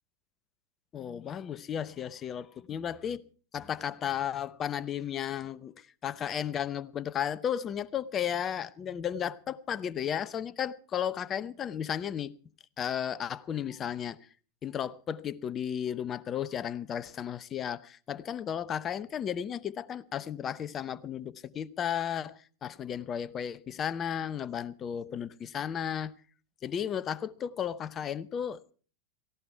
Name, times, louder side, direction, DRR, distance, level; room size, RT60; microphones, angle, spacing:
voice 1, 0.9-3.2 3.5-12.3 12.8-14.2 14.6-26.1 26.6-28.6, left 9 dB, 25° left, 0.8 m, -34 dB
18.0 x 15.5 x 4.6 m
figure-of-eight pair, 90°, 0 cm